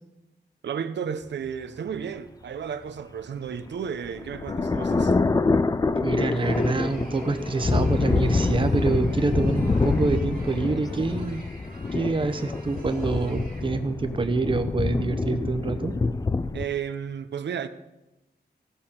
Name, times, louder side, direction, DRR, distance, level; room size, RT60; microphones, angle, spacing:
voice 1, 0.6-5.2 16.5-17.7, right 7 dB, 90° right, 0.7 m, -33 dB
sound 1, 3.6-16.7, left 3 dB, 20° left, 0.3 m, -26 dB
voice 2, 6.0-11.4 11.9-15.9, right 3 dB, 30° right, 0.7 m, -26 dB
sound 2, 6.4-13.7, right 2 dB, 50° right, 1.8 m, -49 dB
15.5 x 6.7 x 5.6 m
wide cardioid pair, 170°, 18 cm